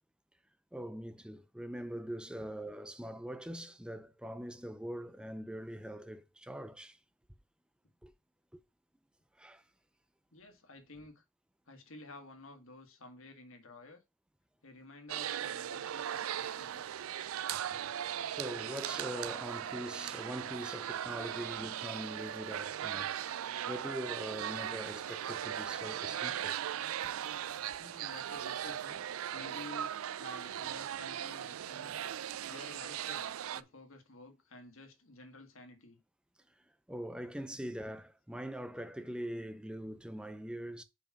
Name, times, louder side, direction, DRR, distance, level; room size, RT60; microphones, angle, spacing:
voice 1, 0.7-7.0 8.0-8.1 8.5-8.6 9.4-9.6 18.2-23.1 23.7-26.6 36.9-40.8, equal, 5° right, 0.5 m, -42 dB
voice 2, 10.3-11.2 11.7-14.0 14.6-17.0 17.5-17.8 27.8-29.0 29.3-32.0 32.4-36.0, left 2 dB, 75° left, 1.7 m, -52 dB
sound 1, 15.1-33.6, right 10 dB, 85° right, 0.4 m, -38 dB
5.2 x 4.8 x 5.8 m
head